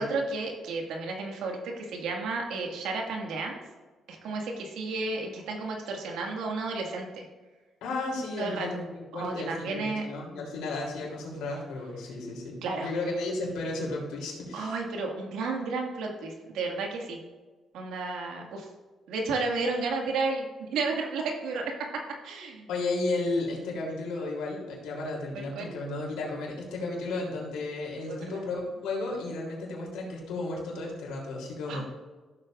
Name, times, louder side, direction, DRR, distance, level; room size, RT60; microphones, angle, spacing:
voice 1, 0.0-3.6 4.1-7.3 8.4-8.7 9.1-10.0 12.6-12.9 14.5-17.2 17.7-18.7 19.1-20.5 20.7-21.7 22.2-22.7 25.3-25.7 28.1-28.2 31.7-31.8, right 3 dB, 85° right, 1 dB, 2.0 m, -32 dB
voice 2, 7.8-14.7 22.7-31.8, left 2 dB, 90° left, -2 dB, 3.4 m, -33 dB
14.5 x 7.9 x 2.6 m, 1.3 s
cardioid pair, 90°, 0 cm